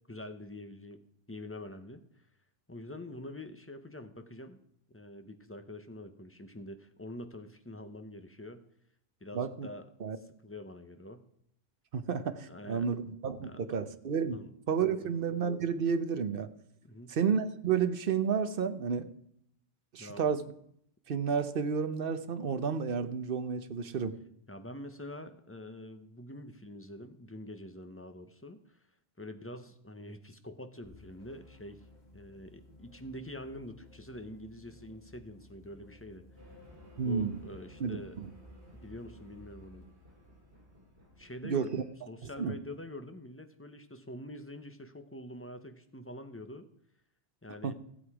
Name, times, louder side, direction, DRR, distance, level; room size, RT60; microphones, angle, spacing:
voice 1, 0.1-1.0 1.3-2.0 2.7-4.6 4.9-8.6 9.2-9.9 10.1-11.2 12.5-12.9 13.4-13.8 14.3-14.5 14.9-15.1 16.8-17.1 20.0-20.2 24.5-28.8 29.2-31.8 32.1-36.2 37.0-38.2 38.7-39.8 41.2-46.7 47.4-47.7, left 1 dB, 15° left, 7 dB, 0.8 m, -46 dB
voice 2, 9.3-9.7 10.0-10.2 11.9-14.4 14.7-16.5 17.1-19.1 19.9-20.4 21.1-24.2 37.0-37.4 37.8-38.3 41.4-41.8 42.4-42.5 47.6-47.7, right 6 dB, 55° right, 10 dB, 1.0 m, -31 dB
sound 1, 30.8-40.0, left 2 dB, 40° left, 2.0 m, -57 dB
sound 2, 36.4-41.8, equal, 75° right, 3.3 m, -56 dB
15.0 x 8.0 x 4.8 m, 0.72 s
omnidirectional pair, 1.1 m